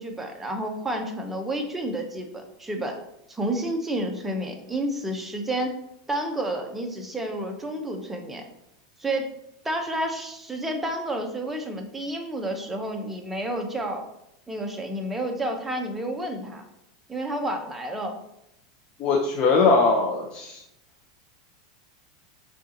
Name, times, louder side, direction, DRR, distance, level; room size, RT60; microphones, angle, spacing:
voice 1, 0.0-3.0 3.3-5.8 6.1-8.4 9.0-9.3 9.6-14.0 14.5-16.6 17.1-18.2, right 1 dB, 10° right, 3 dB, 0.7 m, -30 dB
voice 2, 19.0-20.6, left 4 dB, 40° left, -2 dB, 0.7 m, -21 dB
6.6 x 2.5 x 2.8 m, 0.83 s
supercardioid pair, 120°, 3 cm